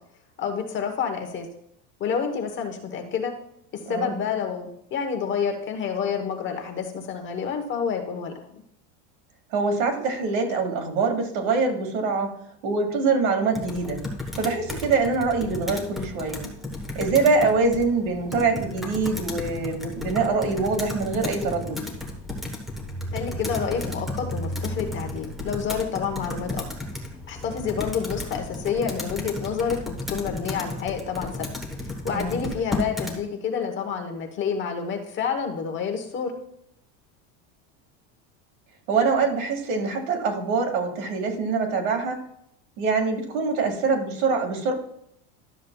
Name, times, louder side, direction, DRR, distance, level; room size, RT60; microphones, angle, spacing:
voice 1, 0.4-1.5 2.0-3.4 3.7-8.5 23.1-26.6 27.3-31.5 32.0-36.3, left 6 dB, 30° left, 5 dB, 1.0 m, -29 dB
voice 2, 9.5-12.3 12.6-14.0 14.4-16.4 17.0-21.8 32.1-32.4 38.9-42.2 42.8-44.7, right 4 dB, 80° right, 3 dB, 2.1 m, -24 dB
Computer keyboard, 13.5-33.2, left 1 dB, ahead, 1.1 m, -33 dB
12.0 x 7.2 x 2.3 m, 0.72 s
cardioid pair, 160°, 40 cm